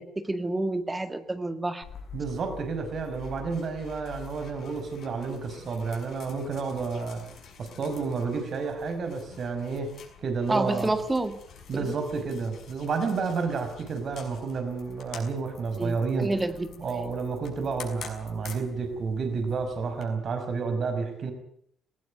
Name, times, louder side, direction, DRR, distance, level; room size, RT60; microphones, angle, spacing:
voice 1, 0.0-1.8 10.5-11.4 11.7-11.9 15.8-17.0, right 2 dB, 15° right, 10 dB, 2.0 m, -29 dB
sound 1, 1.8-20.1, left 6 dB, 70° left, 6.1 m, -47 dB
voice 2, 2.1-7.2 7.6-9.9 10.2-11.0 11.7-16.3 16.8-21.3, right 4 dB, 55° right, 6 dB, 5.4 m, -30 dB
19.5 x 17.0 x 9.4 m, 0.67 s
cardioid pair, 90°, 0 cm